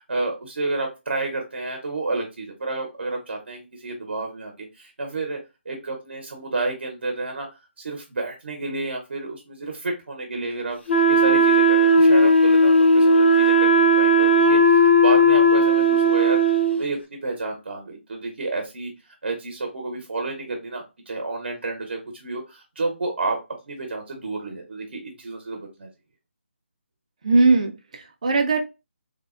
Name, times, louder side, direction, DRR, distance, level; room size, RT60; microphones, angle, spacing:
voice 1, 0.0-5.4 5.6-18.9 19.2-23.4 23.7-25.9, right 3 dB, 55° right, 2 dB, 0.8 m, -30 dB
Wind instrument woodwind instrument, 10.9-16.8, right 1 dB, 60° left, 0.6 m, -16 dB
voice 2, 27.2-28.6, right 3 dB, 35° right, 6 dB, 0.4 m, -19 dB
3.4 x 2.0 x 2.3 m, 0.26 s
hypercardioid pair, 170°, 7 cm